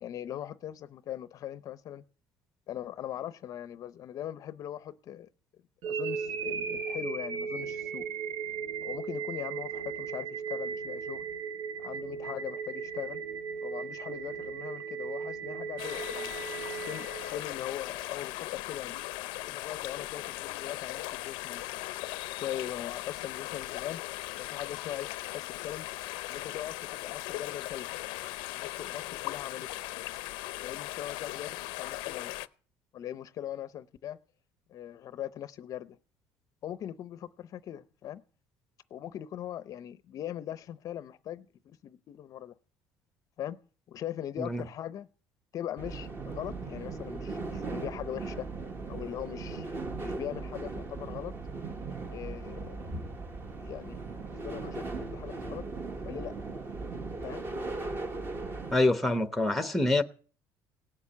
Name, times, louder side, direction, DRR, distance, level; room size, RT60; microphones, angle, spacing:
voice 1, 0.0-2.0 2.7-5.3 5.9-8.1 8.8-11.2 11.8-13.2 13.6-16.3 16.9-19.0 19.4-21.7 22.4-24.0 24.4-25.9 26.3-27.9 28.5-29.7 30.6-32.3 32.9-34.2 34.7-36.0 36.6-38.2 38.9-42.5 43.4-43.6 43.9-45.1 45.5-48.5 48.9-51.3 52.1-52.9 53.6-55.6 56.0-56.5 57.2-57.4, left 11 dB, 45° left, 0.6 m, -40 dB
sound 1, 5.8-17.9, right 6 dB, 70° right, 1.6 m, -37 dB
sound 2, 15.8-32.5, left 19 dB, 85° left, 0.6 m, -38 dB
sound 3, 45.8-58.8, right 3 dB, 25° right, 1.5 m, -38 dB
voice 2, 58.7-60.0, left 2 dB, ahead, 0.9 m, -26 dB
17.5 x 7.2 x 8.5 m
cardioid pair, 150°, 8 cm